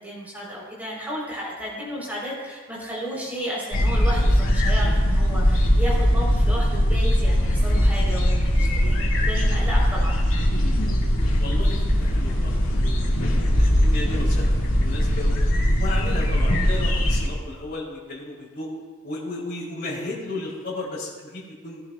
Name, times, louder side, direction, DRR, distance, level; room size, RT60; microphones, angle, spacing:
voice 1, 0.0-10.2, equal, 10° right, -5 dB, 4.0 m, -33 dB
sound 1, 3.7-17.3, equal, 80° left, 2.1 m, -20 dB
voice 2, 11.4-15.3 15.8-18.7 19.0-21.8, left 2 dB, 45° left, -5 dB, 3.7 m, -34 dB
19.5 x 11.0 x 2.4 m, 1.4 s
head